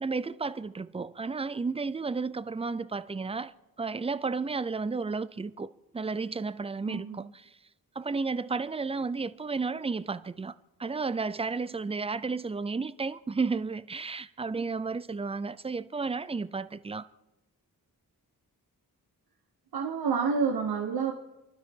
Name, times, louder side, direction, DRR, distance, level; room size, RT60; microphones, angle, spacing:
voice 1, 0.0-3.5 3.8-7.5 8.0-10.5 10.8-17.1, right 4 dB, 15° right, 0.4 m, -32 dB
voice 2, 6.8-7.3 19.7-21.1, right 5 dB, 80° right, 1.2 m, -29 dB
29.5 x 12.0 x 3.7 m
wide cardioid pair, 90°, 37 cm